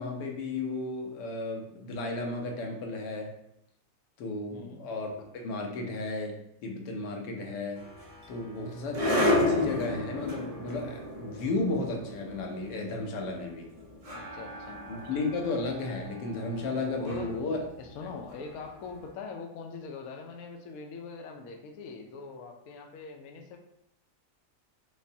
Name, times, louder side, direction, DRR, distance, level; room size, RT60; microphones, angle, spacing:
voice 1, 0.0-3.3 4.2-6.4 6.6-7.8 8.3-13.7 14.9-17.6 18.0-18.1, left 2 dB, 90° left, 2 dB, 1.3 m, -34 dB
sound 1, 7.8-18.9, left 2 dB, 60° right, 0.3 m, -33 dB
voice 2, 14.1-14.8 17.0-17.3 17.8-23.6, left 4 dB, 70° left, 3 dB, 0.9 m, -42 dB
5.2 x 2.1 x 2.6 m, 0.78 s
omnidirectional pair, 1.7 m